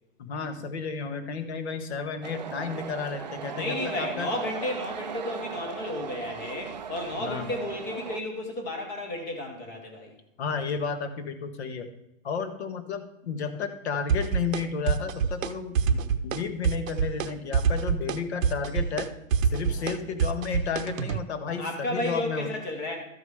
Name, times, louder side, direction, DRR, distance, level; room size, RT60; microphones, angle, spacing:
voice 1, 0.2-4.3 7.2-7.5 10.4-11.9 12.2-19.1 19.4-22.5, left 6 dB, 55° left, 9 dB, 1.3 m, -32 dB
sound 1, 2.2-8.2, right 7 dB, 35° right, 0.4 m, -37 dB
voice 2, 3.5-10.1 19.6-20.2 21.5-23.0, left 1 dB, 10° left, 3 dB, 0.6 m, -33 dB
sound 2, 14.1-14.6 14.9-15.5 15.8-16.4 16.6-17.3 17.5-21.2, right 6 dB, 75° right, 0.8 m, -25 dB
13.0 x 5.0 x 4.8 m, 0.85 s
hypercardioid pair, 165°, 40 cm